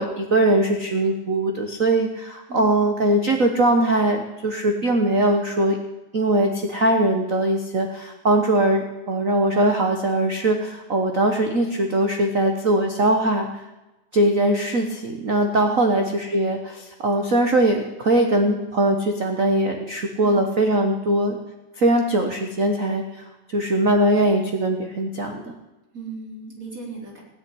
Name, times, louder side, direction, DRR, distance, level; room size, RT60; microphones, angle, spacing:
voice 1, 0.0-5.8 6.1-13.5 14.1-21.4 21.8-23.2 23.5-25.5, right 1 dB, 75° right, 4 dB, 0.7 m, -21 dB
voice 2, 15.6-16.0 20.2-20.4 25.9-27.2, right 3 dB, 25° right, -2 dB, 4.1 m, -36 dB
16.5 x 7.4 x 9.8 m, 1.1 s
omnidirectional pair, 3.3 m